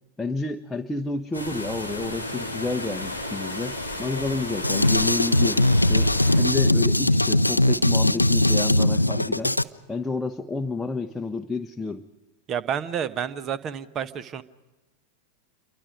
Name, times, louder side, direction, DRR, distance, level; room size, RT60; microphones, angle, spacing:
voice 1, 0.2-9.6 9.9-12.0, left 3 dB, 10° left, 4 dB, 1.0 m, -30 dB
sound 1, 1.3-6.4, left 1 dB, 90° right, 4.1 m, -33 dB
Drum kit, 4.6-9.6, left 1 dB, 85° left, 0.6 m, -20 dB
voice 2, 12.5-14.4, right 8 dB, 30° right, 15 dB, 1.2 m, -29 dB
28.5 x 24.0 x 5.1 m, 1.1 s
figure-of-eight pair, 90°, 0 cm